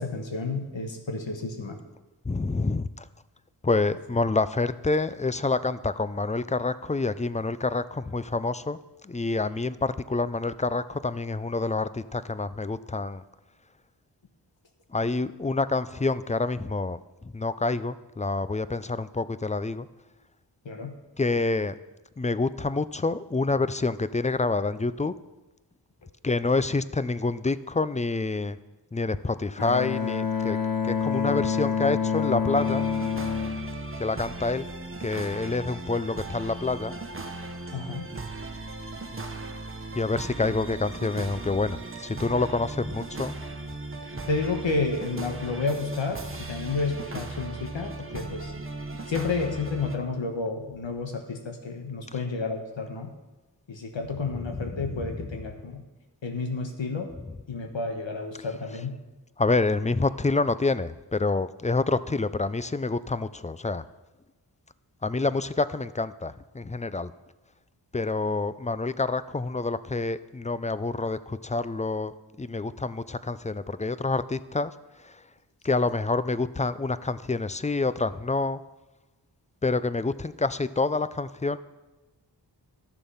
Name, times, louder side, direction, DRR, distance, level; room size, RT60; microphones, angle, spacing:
voice 1, 0.0-1.8 20.6-20.9 37.7-38.1 44.3-48.5 49.1-53.1 53.7-55.8 56.2-57.1 57.5-59.0, left 4 dB, 80° left, 4 dB, 1.3 m, -31 dB
voice 2, 2.3-3.0 3.6-8.8 9.0-13.2 14.9-17.0 17.3-19.9 21.2-21.7 22.2-25.1 26.2-28.6 28.9-30.6 30.8-32.8 34.0-34.6 35.0-36.9 39.9-43.4 54.5-55.2 59.4-63.8 65.0-67.1 67.9-72.1 72.4-74.7 75.6-78.6 79.6-81.6, left 3 dB, 15° left, 15 dB, 0.4 m, -27 dB
Bowed string instrument, 29.6-34.6, left 6 dB, 50° left, 0.9 m, -28 dB
sound 1, 32.5-50.0, right 2 dB, 30° right, 1.0 m, -37 dB
12.0 x 7.0 x 5.6 m, 1.1 s
wide cardioid pair, 60°, 45 cm